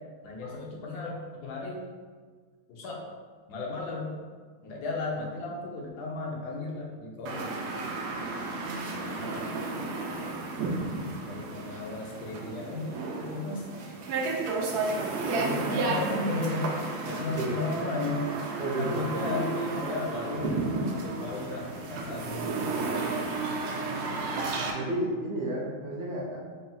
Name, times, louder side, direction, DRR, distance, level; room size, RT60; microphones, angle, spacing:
voice 1, 0.2-1.9 2.7-3.0 3.5-4.2 4.6-7.6 9.0-9.5 11.1-13.7 15.4-16.7 17.1-18.3 18.8-20.6 21.0-22.8, left 2 dB, 85° left, -2 dB, 1.3 m, -34 dB
sound 1, 7.3-24.7, right 3 dB, 85° right, 1.1 m, -32 dB
voice 2, 18.6-19.0 24.7-26.4, right 1 dB, 65° right, -4 dB, 0.7 m, -31 dB
4.0 x 2.0 x 3.7 m, 1.6 s
omnidirectional pair, 1.6 m